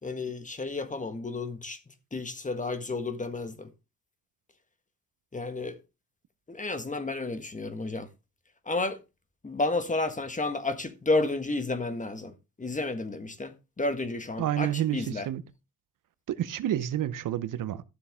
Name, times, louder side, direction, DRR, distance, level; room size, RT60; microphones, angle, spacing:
voice 1, 0.0-3.7 5.3-5.8 6.5-8.1 8.6-9.0 9.4-15.3, left 2 dB, 25° left, 1.6 m, -31 dB
voice 2, 14.4-15.4 16.3-17.8, right 12 dB, 70° right, 0.9 m, -29 dB
13.0 x 7.0 x 3.6 m
cardioid pair, 75°, 33 cm